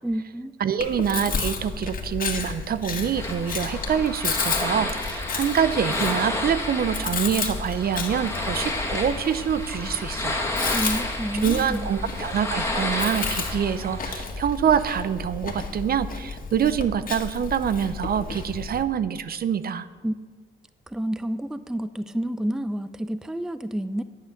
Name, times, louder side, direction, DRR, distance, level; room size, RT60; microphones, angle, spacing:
voice 1, 0.0-0.5 10.7-11.9 20.0-20.2 20.9-24.0, right 1 dB, 5° right, 13 dB, 0.4 m, -29 dB
voice 2, 0.6-10.4 11.4-19.9, right 8 dB, 50° right, 14 dB, 0.6 m, -25 dB
Chewing mastication, 0.8-18.8, left 4 dB, 45° left, 1.9 m, -32 dB
sound 1, 3.2-14.1, left 2 dB, 15° left, 1.9 m, -31 dB
10.5 x 8.4 x 6.5 m, 1.4 s
cardioid pair, 90°, 20 cm